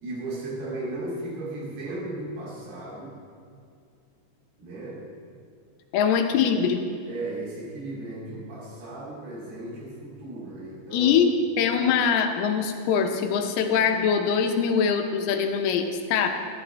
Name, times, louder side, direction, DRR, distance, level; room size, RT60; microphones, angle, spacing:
voice 1, 0.0-3.2 4.6-5.0 7.0-11.1, right 2 dB, 90° right, -6 dB, 4.9 m, -35 dB
voice 2, 5.9-6.8 10.9-11.3 11.6-16.3, left 7 dB, 80° left, 5 dB, 2.7 m, -23 dB
14.0 x 11.5 x 3.3 m, 2.4 s
omnidirectional pair, 4.5 m